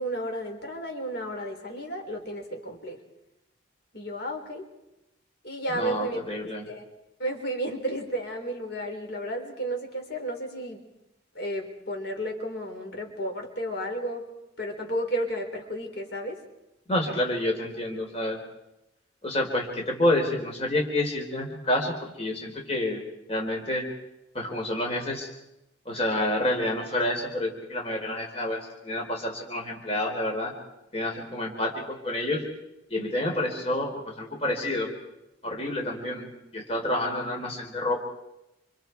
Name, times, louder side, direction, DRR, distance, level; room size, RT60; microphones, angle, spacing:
voice 1, 0.0-3.0 3.9-4.6 5.4-6.2 6.7-6.9 7.2-10.8 11.3-14.3 14.6-16.4, right 1 dB, 55° left, 3 dB, 4.8 m, -32 dB
voice 2, 5.7-6.6 16.9-18.4 19.2-23.0 23.3-23.9 24.3-25.3 25.9-30.5 30.9-32.5 32.9-34.9 35.4-38.0, left 1 dB, 30° left, 1 dB, 4.2 m, -28 dB
29.0 x 28.5 x 4.7 m, 0.90 s
head